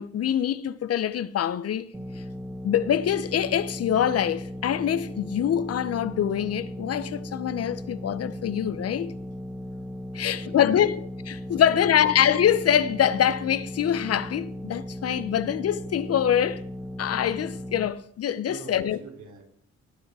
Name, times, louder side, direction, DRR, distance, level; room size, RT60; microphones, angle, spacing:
voice 1, 0.0-1.9 2.6-9.1 10.1-16.6 17.0-19.0, left 9 dB, 55° left, 0.7 m, -24 dB
sound 1, 1.9-17.9, left 1 dB, 10° right, 1.6 m, -37 dB
voice 2, 10.1-10.9 11.5-12.1 18.5-19.5, right 5 dB, 75° right, 3.3 m, -44 dB
17.5 x 7.0 x 4.8 m
cardioid pair, 90°, 30 cm